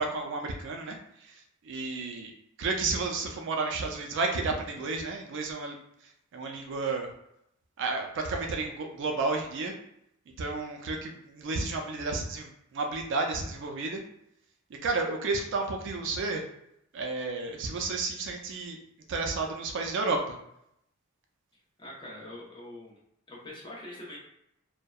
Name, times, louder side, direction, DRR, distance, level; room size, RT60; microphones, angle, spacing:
voice 1, 0.0-2.3 2.6-5.8 6.3-7.1 7.8-9.7 10.4-14.0 14.8-16.4 16.9-18.8 19.1-20.4, right 3 dB, 60° right, 3 dB, 0.4 m, -32 dB
voice 2, 21.8-23.0 23.3-24.2, left 1 dB, 25° left, -5 dB, 0.8 m, -43 dB
2.6 x 2.0 x 2.3 m, 0.78 s
head